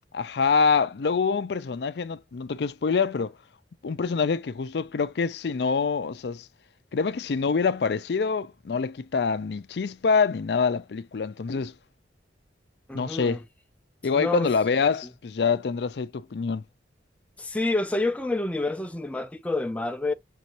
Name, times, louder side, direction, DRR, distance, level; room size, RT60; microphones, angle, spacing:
voice 1, 0.1-3.3 3.8-6.5 6.9-11.7 12.9-13.4 14.0-16.6, left 5 dB, 65° left, 0.4 m, -25 dB
voice 2, 12.9-13.4 14.1-14.5 17.4-20.1, left 2 dB, 10° left, 0.4 m, -28 dB
6.1 x 2.6 x 2.9 m
head